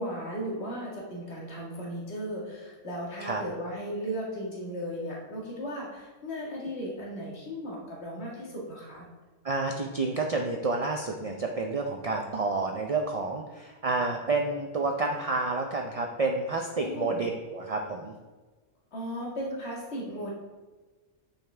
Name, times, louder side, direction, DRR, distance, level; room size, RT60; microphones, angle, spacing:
voice 1, 0.0-9.1 16.8-17.2 18.9-20.3, equal, 55° left, -4 dB, 2.1 m, -36 dB
voice 2, 9.4-18.1, right 3 dB, 45° right, 2 dB, 0.4 m, -29 dB
8.9 x 5.8 x 3.3 m, 1.3 s
omnidirectional pair, 1.4 m